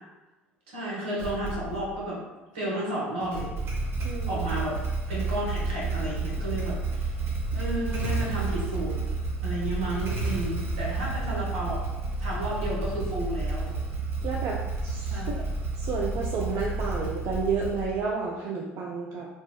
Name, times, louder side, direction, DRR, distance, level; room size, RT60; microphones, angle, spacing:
voice 1, 0.7-2.2 2.5-3.5 4.3-4.8 5.1-7.1 7.5-9.0 9.4-11.8 12.2-13.8 15.1-15.5, right 1 dB, 75° right, -6 dB, 1.0 m, -32 dB
Motorcycle / Engine starting, 1.2-1.9 3.2-18.1, right 3 dB, 40° right, 0.8 m, -31 dB
voice 2, 4.0-4.5 14.2-15.4 15.8-19.3, right 5 dB, 55° right, -2 dB, 0.4 m, -31 dB
3.4 x 2.0 x 2.3 m, 1.1 s
hypercardioid pair, 60°, 6 cm